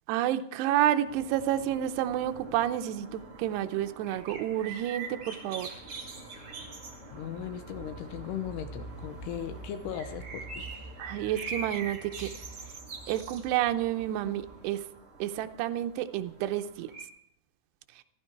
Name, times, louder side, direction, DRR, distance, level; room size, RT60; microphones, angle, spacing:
voice 1, 0.1-5.7 11.0-12.3 13.1-14.8 15.2-16.9, right 12 dB, 80° right, 8 dB, 2.4 m, -30 dB
sound 1, 1.1-17.0, right 4 dB, 35° right, 2.4 m, -45 dB
sound 2, 5.6-14.8, right 1 dB, 55° left, 3.2 m, -47 dB
voice 2, 7.1-10.9, left 9 dB, 75° left, 9 dB, 2.6 m, -38 dB
14.5 x 13.5 x 4.6 m, 0.72 s
omnidirectional pair, 5.5 m